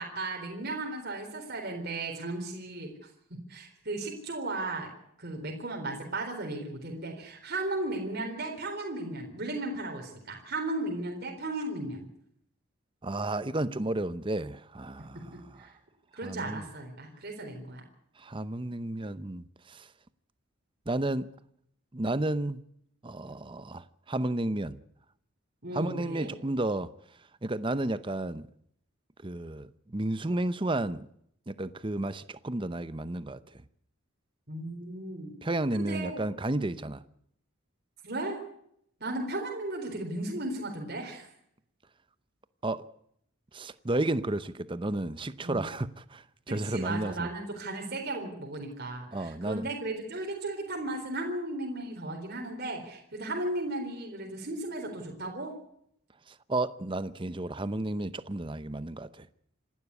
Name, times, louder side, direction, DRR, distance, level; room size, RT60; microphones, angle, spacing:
voice 1, 0.0-2.9 3.5-4.9 5.2-12.0 15.6-15.7 16.1-17.8 25.6-26.3 34.5-35.3 35.7-36.2 38.0-38.4 39.0-41.3 45.4-45.6 46.5-55.5, right 2 dB, 45° right, 4.0 m, -35 dB
voice 2, 13.0-15.7 16.2-16.6 18.2-19.9 20.9-21.3 21.9-22.6 23.0-24.8 25.7-26.9 27.4-28.5 29.2-31.1 31.5-33.4 35.4-37.0 42.6-42.9 43.5-47.3 49.1-49.7 56.3-59.3, right 2 dB, 25° right, 0.7 m, -32 dB
27.0 x 12.0 x 8.3 m
head